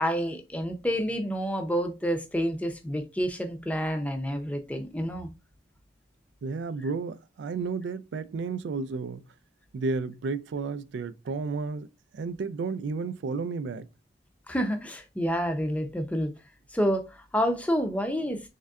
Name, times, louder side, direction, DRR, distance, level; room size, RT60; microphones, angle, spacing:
voice 1, 0.0-5.3 14.5-16.3 16.7-18.5, equal, 10° left, 0.5 m, -28 dB
voice 2, 6.4-9.3 9.7-13.9, right 4 dB, 80° right, 0.3 m, -32 dB
3.7 x 3.3 x 2.3 m
head